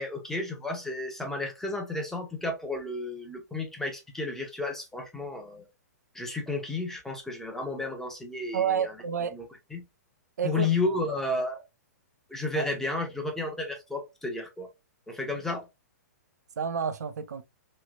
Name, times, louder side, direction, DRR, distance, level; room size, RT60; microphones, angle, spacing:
voice 1, 0.0-5.7 6.1-8.8 9.3-9.4 9.7-9.8 10.4-11.6 12.3-14.7 15.1-15.7, left 2 dB, 5° left, 0.9 m, -32 dB
voice 2, 8.5-9.3 10.4-10.7 12.5-12.7 16.6-17.4, right 7 dB, 80° right, 0.5 m, -29 dB
3.2 x 3.0 x 2.4 m
hypercardioid pair, 130°, 9 cm